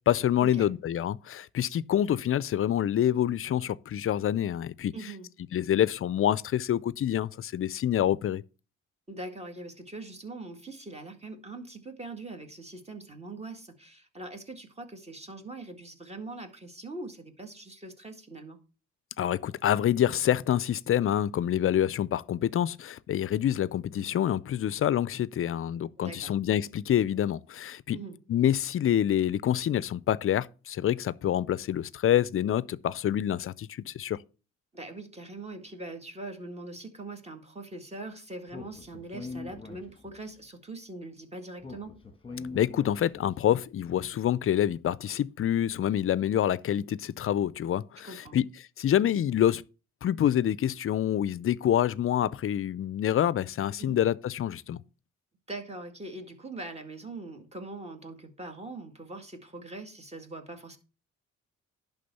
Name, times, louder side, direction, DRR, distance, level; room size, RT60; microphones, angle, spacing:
voice 1, 0.0-4.9 5.5-8.4 19.2-28.0 28.3-34.2 42.5-48.4 48.8-49.6 50.0-54.8, left 11 dB, 45° left, 0.5 m, -27 dB
voice 2, 4.9-5.3 9.1-18.6 26.0-26.3 27.9-28.2 34.7-42.0 48.0-48.4 53.8-54.0 55.5-60.8, right 2 dB, 20° right, 1.9 m, -42 dB
Speech, 38.5-40.3 41.6-43.4, left 4 dB, 20° left, 1.5 m, -42 dB
11.0 x 3.7 x 6.9 m
cardioid pair, 90°, 30 cm